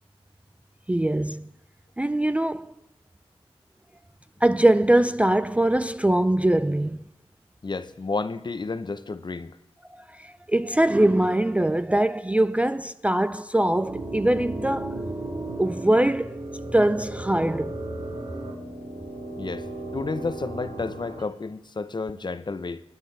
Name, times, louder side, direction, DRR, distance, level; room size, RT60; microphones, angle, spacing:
voice 1, 0.9-1.5 2.0-2.7 4.4-7.0 9.9-15.0 15.6-16.4 16.7-17.7, right 1 dB, 10° right, 0.4 m, -22 dB
voice 2, 7.6-9.6 19.4-19.7 19.9-22.8, left 4 dB, 40° left, 0.8 m, -31 dB
sound 1, 13.8-21.2, right 2 dB, 70° right, 2.8 m, -35 dB
20.0 x 9.3 x 3.3 m
cardioid pair, 45°, 11 cm